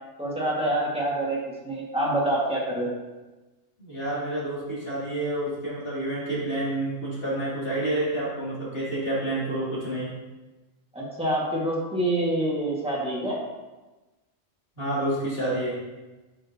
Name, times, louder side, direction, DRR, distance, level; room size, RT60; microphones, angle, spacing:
voice 1, 0.2-1.4 1.6-2.9 10.9-13.4, right 1 dB, 5° right, -5 dB, 1.6 m, -26 dB
voice 2, 3.8-10.1 14.8-15.8, right 1 dB, 50° left, -8 dB, 2.9 m, -29 dB
8.6 x 6.5 x 2.8 m, 1.2 s
omnidirectional pair, 1.3 m